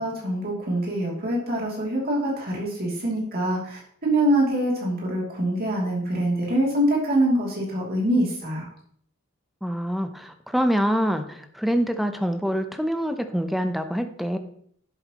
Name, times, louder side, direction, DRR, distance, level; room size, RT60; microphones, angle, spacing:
voice 1, 0.0-8.7, right 1 dB, 45° right, -3 dB, 2.8 m, -24 dB
voice 2, 9.6-14.4, equal, ahead, 7 dB, 0.7 m, -25 dB
11.0 x 7.9 x 3.0 m, 0.63 s
head